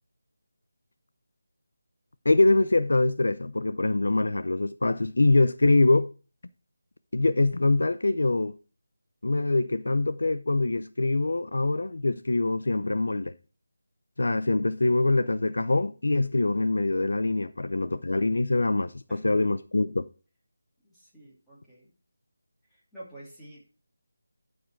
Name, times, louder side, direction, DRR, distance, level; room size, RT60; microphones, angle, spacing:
voice 1, 2.2-6.1 7.1-8.6 9.2-13.3 14.2-20.1, left 2 dB, 75° left, 0.7 m, -24 dB
voice 2, 20.8-21.9 22.7-23.8, right 1 dB, ahead, 2.6 m, -49 dB
13.5 x 4.9 x 4.6 m
figure-of-eight pair, 170°, 0 cm